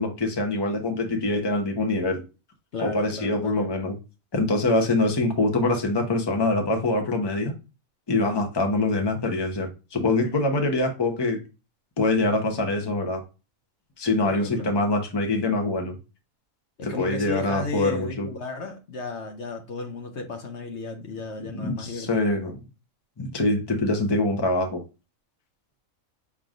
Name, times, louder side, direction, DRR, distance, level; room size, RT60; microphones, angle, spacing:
voice 1, 0.0-2.2 2.8-3.9 4.3-7.5 8.1-11.4 12.0-13.2 14.0-16.0 16.8-18.3 21.4-22.5 23.2-24.8, left 2 dB, 20° left, 0.8 m, -24 dB
voice 2, 2.7-3.7 14.2-14.8 16.8-22.3, left 3 dB, 60° left, 1.0 m, -34 dB
5.9 x 3.6 x 2.4 m
omnidirectional pair, 1.5 m